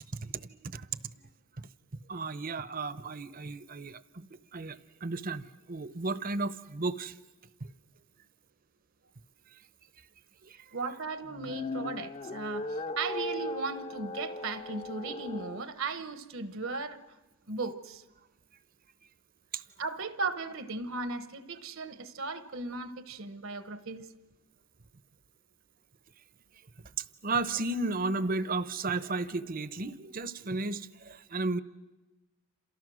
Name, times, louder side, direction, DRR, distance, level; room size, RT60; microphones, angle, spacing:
voice 1, 0.1-1.2 1.6-4.3 4.5-7.2 7.6-7.7 9.5-9.6 10.4-10.7 19.5-19.6 27.0-31.6, right 3 dB, 40° right, 14 dB, 0.8 m, -34 dB
voice 2, 10.7-17.0 17.5-18.0 19.8-24.1, right 3 dB, 65° right, 11 dB, 1.1 m, -36 dB
sound 1, 11.2-15.6, left 1 dB, 35° left, 0.8 m, -37 dB
29.5 x 27.5 x 6.3 m, 1.1 s
head